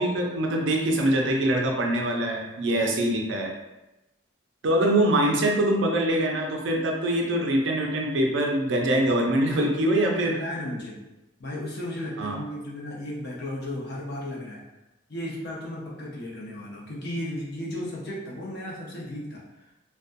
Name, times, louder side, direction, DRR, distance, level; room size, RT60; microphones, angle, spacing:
voice 1, 0.0-3.5 4.6-10.4 12.2-12.4, right 1 dB, 65° right, 1 dB, 0.4 m, -24 dB
voice 2, 9.4-11.0 11.4-14.6 15.1-19.4, left 1 dB, 55° left, -5 dB, 0.7 m, -35 dB
2.4 x 2.2 x 2.5 m, 0.97 s
head